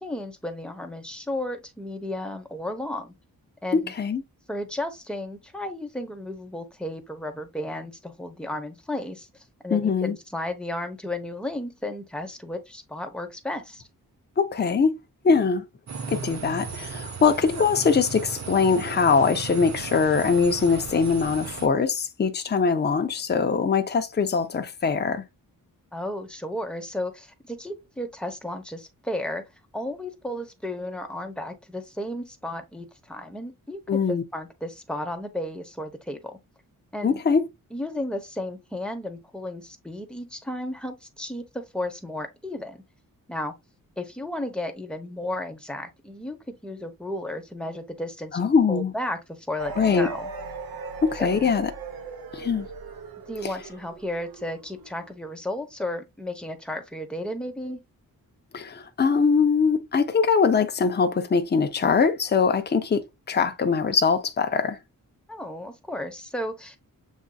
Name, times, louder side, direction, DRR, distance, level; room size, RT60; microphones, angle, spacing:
voice 1, 0.0-3.1 3.6-3.9 4.5-13.9 25.9-29.4 29.7-36.4 36.9-37.2 37.7-42.8 43.3-43.5 44.0-46.4 46.6-50.3 51.2-51.5 53.3-57.8 65.3-66.8, left 1 dB, 5° left, 0.9 m, -33 dB
voice 2, 3.7-4.2 9.7-10.1 14.4-14.9 15.2-15.6 16.1-25.2 33.9-34.2 37.0-37.4 48.3-48.9 49.8-50.1 51.0-51.7 52.3-52.7 58.5-64.8, left 5 dB, 30° left, 0.6 m, -22 dB
sound 1, 15.9-21.7, right 5 dB, 50° right, 0.8 m, -36 dB
sound 2, 49.6-55.1, right 4 dB, 90° right, 0.9 m, -38 dB
7.2 x 2.6 x 2.3 m
wide cardioid pair, 115°, 35 cm